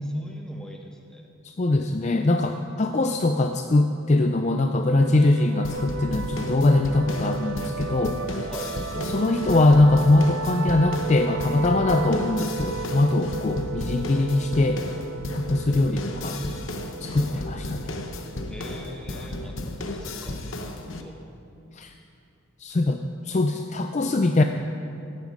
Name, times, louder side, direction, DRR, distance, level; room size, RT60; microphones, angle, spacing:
voice 1, 0.0-1.3 8.5-8.7 18.5-21.2, equal, 5° left, 1 dB, 1.1 m, -43 dB
voice 2, 1.4-8.2 9.0-14.8 15.3-16.4 17.0-18.0 21.8-21.9 22.6-24.4, left 2 dB, 35° left, 6 dB, 0.4 m, -22 dB
sound 1, 5.0-20.3, right 5 dB, 65° right, 0.5 m, -35 dB
sound 2, 5.6-21.0, left 2 dB, 65° left, 0.9 m, -34 dB
16.5 x 9.5 x 5.3 m, 2.6 s
head